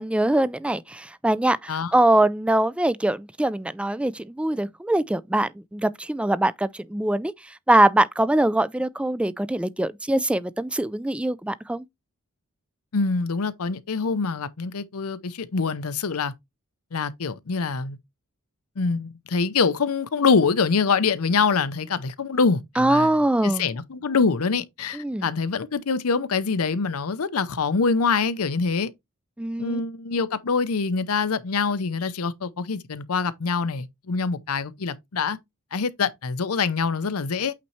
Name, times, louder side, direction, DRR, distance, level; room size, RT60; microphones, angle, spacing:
voice 1, 0.0-7.3 7.7-11.8 22.8-23.7 24.9-25.3 29.4-29.8, right 1 dB, 5° right, 0.3 m, -23 dB
voice 2, 12.9-16.3 16.9-18.0 18.8-23.2 23.4-28.9 29.6-35.4 35.7-37.5, left 5 dB, 75° left, 0.7 m, -25 dB
8.4 x 4.1 x 3.1 m
head